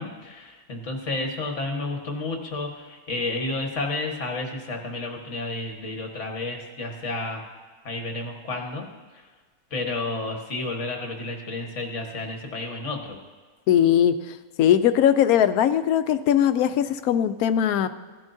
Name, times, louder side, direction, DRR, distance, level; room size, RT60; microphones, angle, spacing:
voice 1, 0.0-7.4 7.9-8.9 9.1-9.2 9.7-13.2, left 2 dB, 55° left, 2 dB, 1.6 m, -31 dB
voice 2, 13.7-17.9, left 10 dB, 80° left, 11 dB, 1.0 m, -20 dB
15.5 x 11.0 x 2.6 m, 1.4 s
omnidirectional pair, 1.6 m